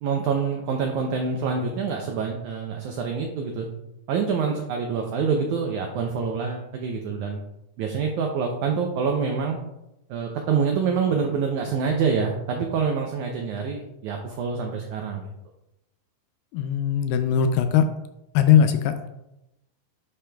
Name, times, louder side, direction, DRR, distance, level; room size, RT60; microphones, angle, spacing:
voice 1, 0.0-3.7 4.1-7.4 7.8-9.6 10.1-15.3, right 5 dB, 85° right, 2 dB, 1.7 m, -26 dB
voice 2, 16.5-17.9 18.3-19.1, left 8 dB, 80° left, 8 dB, 2.2 m, -20 dB
10.0 x 5.2 x 2.3 m, 0.89 s
omnidirectional pair, 4.2 m